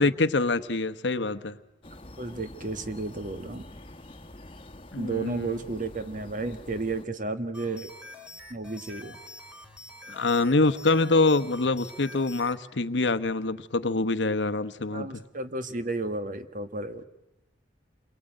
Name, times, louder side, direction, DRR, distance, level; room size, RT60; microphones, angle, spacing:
voice 1, 0.0-1.6 4.9-5.5 10.1-15.2, left 3 dB, 85° left, 12 dB, 1.1 m, -25 dB
sound 1, 1.8-7.1, left 1 dB, 30° left, 1.4 m, -46 dB
voice 2, 2.2-3.7 5.0-7.9 8.5-9.2 14.9-17.0, right 2 dB, 50° right, 10 dB, 1.5 m, -32 dB
sound 2, 7.5-12.6, left 2 dB, 5° right, 2.4 m, -46 dB
29.0 x 22.5 x 9.1 m, 0.97 s
head